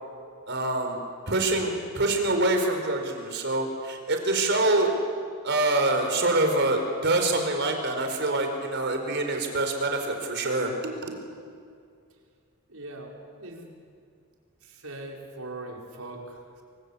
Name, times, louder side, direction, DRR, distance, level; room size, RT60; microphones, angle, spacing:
voice 1, 0.5-1.0 1.3-5.0 5.4-11.1, right 2 dB, 55° right, 4 dB, 4.6 m, -25 dB
voice 2, 12.7-13.8 14.6-16.6, right 2 dB, 80° right, 0 dB, 5.0 m, -41 dB
26.5 x 25.5 x 8.5 m, 2.3 s
head